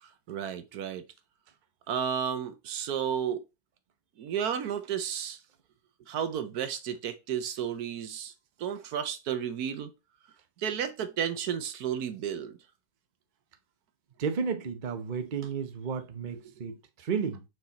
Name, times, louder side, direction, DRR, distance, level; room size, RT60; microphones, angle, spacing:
voice 1, 0.0-1.1 1.9-3.4 4.2-5.4 6.1-8.3 8.6-9.9 10.6-12.6, right 8 dB, 80° right, 1.3 m, -32 dB
voice 2, 14.2-17.4, right 6 dB, 35° right, 0.9 m, -33 dB
6.5 x 4.5 x 4.1 m
omnidirectional pair, 1.6 m